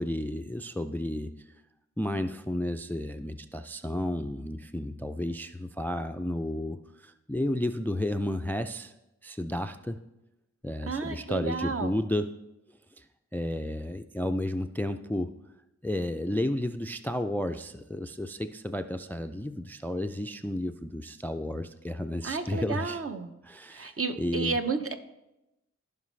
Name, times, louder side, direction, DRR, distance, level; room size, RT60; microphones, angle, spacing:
voice 1, 0.0-1.3 2.0-8.9 9.2-10.0 10.6-12.3 13.0-13.1 13.3-15.4 15.8-23.0 23.4-24.6, left 1 dB, 5° left, 9 dB, 0.3 m, -32 dB
voice 2, 10.8-11.9 22.2-23.3 23.7-24.9, right 4 dB, 50° right, 7 dB, 0.8 m, -32 dB
15.5 x 5.3 x 3.2 m, 0.92 s
wide cardioid pair, 75°, 30 cm